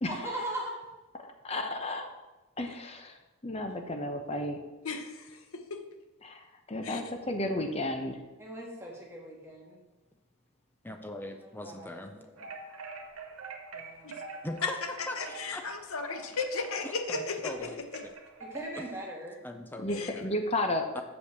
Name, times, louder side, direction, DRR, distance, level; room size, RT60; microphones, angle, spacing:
voice 1, 0.1-0.8 8.4-9.8 11.4-12.5 13.7-14.3 18.4-19.4, right 1 dB, 10° right, -2 dB, 1.5 m, -40 dB
voice 2, 1.2-2.1 2.6-4.6 6.2-8.2 19.8-21.0, left 1 dB, 30° left, 5 dB, 0.8 m, -33 dB
voice 3, 4.8-5.8 6.8-7.0 14.0-14.1 14.6-14.7 15.2-17.5 17.9-18.0 19.9-20.1, left 4 dB, 75° left, 6 dB, 1.0 m, -35 dB
voice 4, 10.8-12.1 14.4-15.6 16.8-18.1 18.8-18.9 19.4-20.4 20.9-21.0, left 1 dB, 10° left, 6 dB, 0.4 m, -41 dB
sound 1, 12.4-19.0, right 4 dB, 80° right, 1.3 m, -45 dB
6.5 x 5.4 x 7.1 m, 1.1 s
head